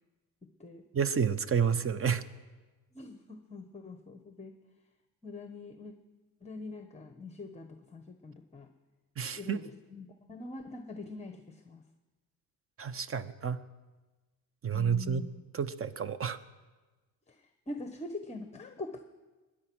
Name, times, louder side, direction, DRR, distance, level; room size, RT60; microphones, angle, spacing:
voice 1, 0.4-0.8 2.9-4.5 5.2-5.9 6.4-8.7 9.4-11.8 14.7-15.3 17.3-19.0, left 3 dB, 15° left, 7 dB, 1.0 m, -44 dB
voice 2, 0.9-2.2 9.2-9.6 12.8-13.6 14.6-15.3 15.5-16.4, right 7 dB, 35° right, 14 dB, 0.8 m, -30 dB
22.0 x 10.0 x 6.2 m, 1.2 s
cardioid pair, 115°, 37 cm